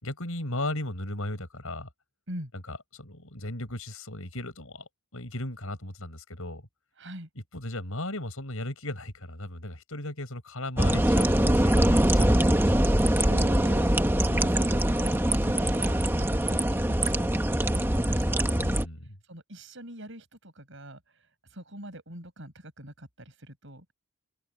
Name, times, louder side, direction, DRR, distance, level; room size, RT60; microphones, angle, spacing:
voice 1, 0.0-1.9 2.5-6.6 7.5-12.6 18.6-19.2, left 1 dB, 70° left, 6.4 m, -36 dB
voice 2, 7.0-7.3 13.3-14.0 14.2-18.7 19.3-21.0 21.5-23.9, right 1 dB, 55° right, 6.9 m, -43 dB
sound 1, 10.8-18.9, right 1 dB, 10° right, 1.0 m, -23 dB
open air
head